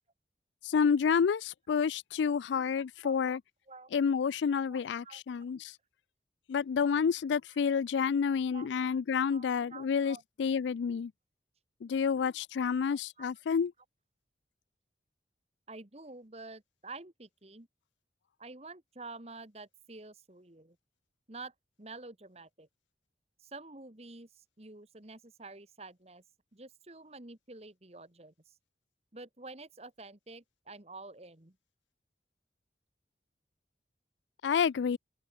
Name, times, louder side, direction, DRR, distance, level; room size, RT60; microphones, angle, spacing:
voice 1, 0.6-3.4 3.9-5.7 6.5-11.1 11.8-13.7 34.4-35.0, left 6 dB, 85° left, 0.4 m, -29 dB
voice 2, 3.0-3.3 3.7-3.9 4.7-5.2 8.5-8.7 9.3-10.2 13.2-13.3 15.7-17.7 18.4-20.8 21.3-22.7 23.4-26.2 26.5-28.5 29.1-31.6, right 3 dB, 35° right, 1.7 m, -49 dB
open air
head